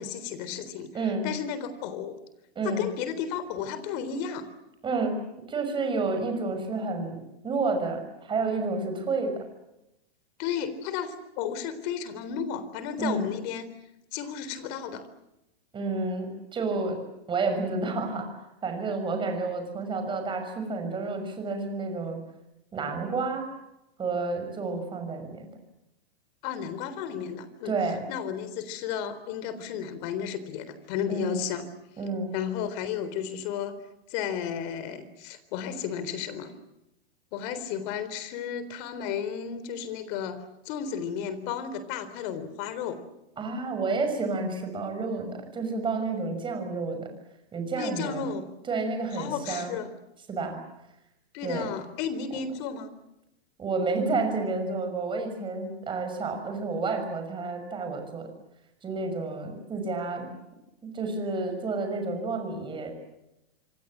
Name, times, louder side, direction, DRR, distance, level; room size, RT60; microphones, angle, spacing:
voice 1, 0.0-0.9 1.2-2.2 2.6-4.5 10.4-13.7 14.1-15.1 26.4-27.7 28.1-31.7 32.3-33.7 34.1-36.5 37.3-43.0 47.8-48.5 49.1-49.9 51.3-52.9, left 8 dB, 40° left, 13 dB, 3.9 m, -33 dB
voice 2, 0.9-1.3 2.5-2.9 4.8-9.5 13.0-13.3 15.7-17.0 17.3-22.2 22.7-23.5 24.0-25.5 27.6-28.1 31.1-31.4 32.0-32.3 43.4-47.1 47.5-48.3 48.6-49.8 50.3-50.6 51.4-51.7 53.6-58.3 58.8-60.3 60.8-62.9, right 3 dB, 15° right, 5 dB, 6.2 m, -30 dB
27.0 x 25.0 x 7.6 m, 0.89 s
hypercardioid pair, 150°, 31 cm